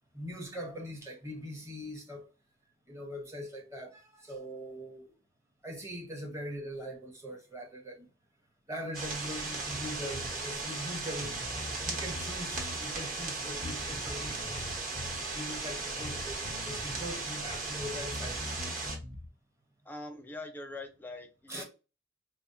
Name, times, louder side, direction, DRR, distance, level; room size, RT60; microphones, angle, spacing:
voice 1, 0.1-2.2 2.9-5.0 5.6-8.1 8.7-11.3 11.8-14.6 15.3-18.6 21.5-21.6, equal, 15° right, 0.8 m, -41 dB
sound 1, 8.9-19.0, right 3 dB, 40° right, 1.1 m, -37 dB
Bass guitar, 9.7-10.4 10.8-10.9 11.2-12.8 13.6-15.2 16.0-17.1 17.4-19.3, left 2 dB, 90° right, 1.2 m, -43 dB
voice 2, 19.8-21.6, left 2 dB, 10° left, 0.5 m, -43 dB
4.1 x 2.0 x 2.6 m
head